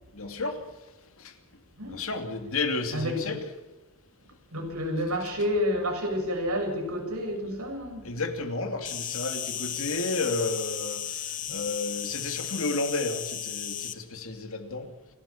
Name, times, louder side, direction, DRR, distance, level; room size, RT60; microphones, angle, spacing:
voice 1, 0.1-0.6 1.9-3.4 8.0-14.9, left 3 dB, 65° left, 6 dB, 2.9 m, -32 dB
voice 2, 2.9-3.4 4.5-8.1 11.4-11.6, equal, 85° right, 3 dB, 7.2 m, -30 dB
Insect, 8.8-13.9, left 10 dB, 40° left, 1.3 m, -34 dB
29.0 x 12.5 x 7.3 m, 1.1 s
head